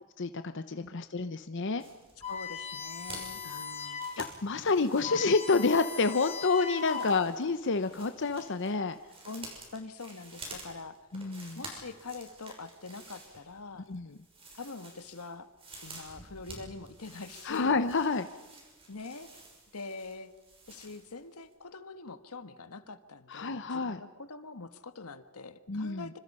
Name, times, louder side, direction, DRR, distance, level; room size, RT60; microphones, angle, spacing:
voice 1, 0.2-1.8 3.5-3.6 4.2-9.0 11.1-11.6 13.9-14.2 17.4-18.3 23.3-24.0 25.7-26.1, left 4 dB, 55° left, 10 dB, 0.8 m, -29 dB
sound 1, 1.8-21.2 21.5-21.6, right 2 dB, 25° right, 6.3 m, -50 dB
sound 2, 2.2-4.2 4.6-4.7 4.9-7.3, left 6 dB, 30° left, 3.4 m, -39 dB
voice 2, 2.3-4.0 6.8-7.1 9.2-11.0 11.5-13.9 14.5-15.5 15.8-17.8 18.9-19.3 19.7-20.3 20.7-26.2, left 3 dB, 90° left, 11 dB, 1.5 m, -44 dB
26.5 x 25.5 x 5.6 m, 1.2 s
head